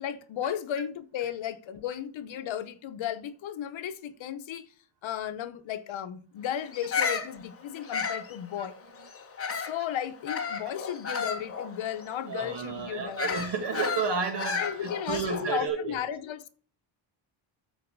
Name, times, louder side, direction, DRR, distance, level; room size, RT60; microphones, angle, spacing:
voice 1, 0.0-4.7 5.0-8.7 9.6-13.4 14.6-16.5, left 10 dB, 70° left, 1.0 m, -34 dB
Bird vocalization bird call bird song, 6.7-9.8 10.3-15.6, left 5 dB, 30° left, 1.3 m, -33 dB
voice 2, 12.2-16.0, right 5 dB, 60° right, 2.2 m, -31 dB
13.0 x 4.8 x 4.7 m
wide cardioid pair, 170°, 48 cm